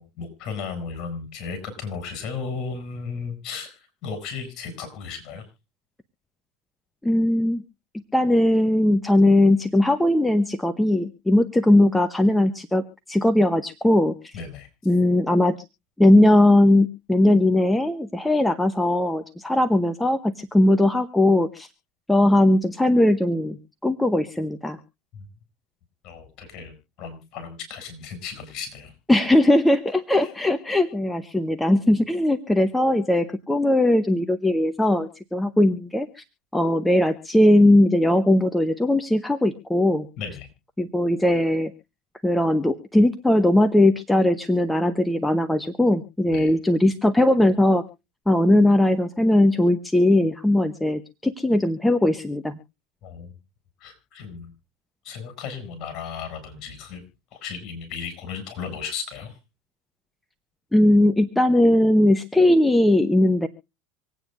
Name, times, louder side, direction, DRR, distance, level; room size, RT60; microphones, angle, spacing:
voice 1, 0.0-5.4 14.3-14.7 25.1-25.2 26.0-26.7 27.0-28.9 40.2-40.5 46.3-46.5 53.0-53.3 53.8-54.5 55.0-57.0 57.3-59.4, left 5 dB, 45° left, 8 dB, 6.8 m, -35 dB
voice 2, 7.0-7.6 8.1-12.8 13.1-14.3 14.9-15.6 16.0-21.7 22.1-23.6 23.8-24.8 29.1-36.1 36.5-40.1 40.8-41.7 42.2-47.8 48.3-52.6 60.7-63.5, left 1 dB, 5° left, 8 dB, 0.8 m, -19 dB
26.0 x 9.1 x 2.5 m, 0.28 s
supercardioid pair, 120°, 0 cm